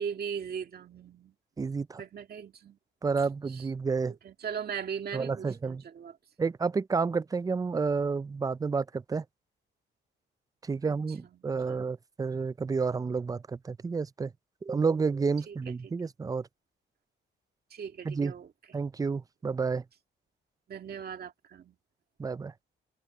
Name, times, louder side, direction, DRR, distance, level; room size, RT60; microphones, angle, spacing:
voice 1, 0.0-1.3 2.0-2.8 3.5-3.7 4.1-6.2 10.8-10.9 11.3-11.9 15.5-15.9 17.7-18.5 20.7-21.8, right 7 dB, 50° right, 2.2 m, -39 dB
voice 2, 1.6-2.0 3.0-4.1 5.1-5.8 6.4-9.2 10.6-14.3 14.6-16.5 18.1-18.3 18.7-19.8 22.2-22.5, right 4 dB, 20° right, 0.4 m, -30 dB
cardioid pair, 90°, 20 cm